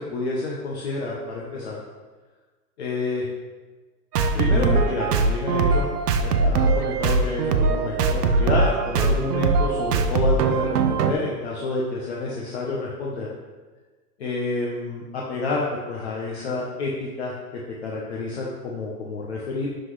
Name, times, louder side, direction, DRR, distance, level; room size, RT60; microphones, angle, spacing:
voice 1, 0.0-1.8 2.8-3.3 4.3-5.9 6.2-13.3 14.2-17.3 17.8-19.7, left 3 dB, 45° left, -3 dB, 1.0 m, -28 dB
sound 1, 4.1-11.1, right 4 dB, 75° right, 0.8 m, -21 dB
11.5 x 4.0 x 3.2 m, 1.3 s
hypercardioid pair, 175°, 48 cm